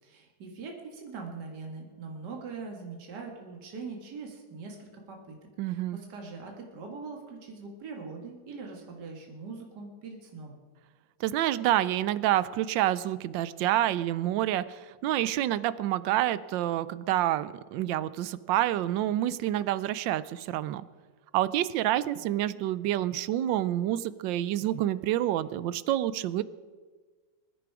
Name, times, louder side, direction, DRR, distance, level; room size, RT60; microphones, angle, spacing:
voice 1, 0.0-5.4 5.6-10.6, right 4 dB, 65° right, 1 dB, 2.4 m, -42 dB
voice 2, 5.6-6.0 11.2-20.8 21.3-26.4, right 13 dB, 85° right, 16 dB, 1.3 m, -28 dB
22.0 x 10.0 x 4.8 m, 1.4 s
omnidirectional pair, 2.0 m